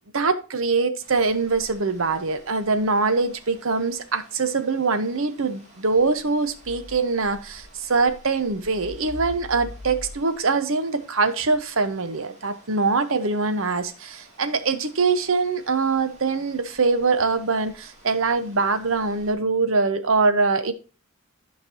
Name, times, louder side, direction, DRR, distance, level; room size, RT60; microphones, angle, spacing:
voice 1, 0.1-20.7, right 4 dB, 65° right, 0.9 m, -23 dB
sound 1, 1.0-19.3, left 1 dB, 30° right, 2.3 m, -47 dB
11.5 x 5.3 x 2.7 m
head